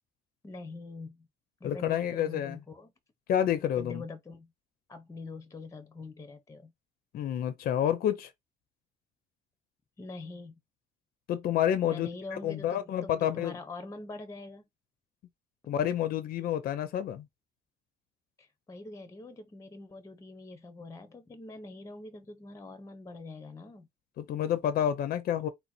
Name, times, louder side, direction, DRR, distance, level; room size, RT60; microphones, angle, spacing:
voice 1, 0.4-1.3 1.6-2.9 3.8-4.5 4.9-6.7 10.0-10.6 11.8-14.6 18.4-23.9, left 3 dB, 20° left, 0.9 m, -44 dB
voice 2, 1.6-2.6 3.3-4.0 7.1-8.3 11.3-13.5 15.7-17.3 24.2-25.5, left 10 dB, 60° left, 0.7 m, -29 dB
4.0 x 2.0 x 4.4 m
cardioid pair, 110°, 17 cm